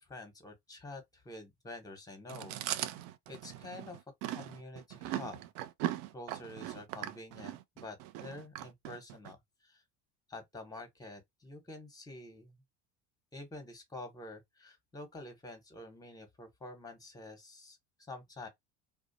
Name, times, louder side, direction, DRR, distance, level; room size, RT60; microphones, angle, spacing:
voice 1, 0.0-2.9 3.3-4.0 4.3-5.4 6.1-9.4 9.6-9.8 10.3-12.6 13.3-18.5, left 2 dB, 10° left, 0.9 m, -48 dB
Chewing mastication, 2.3-9.3, right 13 dB, 65° right, 0.5 m, -39 dB
2.4 x 2.1 x 2.6 m
hypercardioid pair, 85°, 39 cm